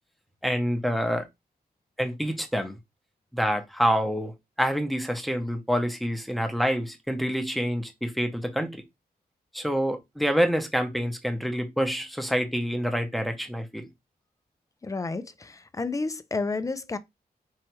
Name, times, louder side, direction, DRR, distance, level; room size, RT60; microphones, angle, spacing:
voice 1, 0.4-1.3 2.0-2.8 3.3-8.8 9.5-13.9, equal, ahead, 0.7 m, -27 dB
voice 2, 14.8-17.0, left 3 dB, 20° left, 0.4 m, -31 dB
4.5 x 3.1 x 3.0 m
wide cardioid pair, 165°, 17 cm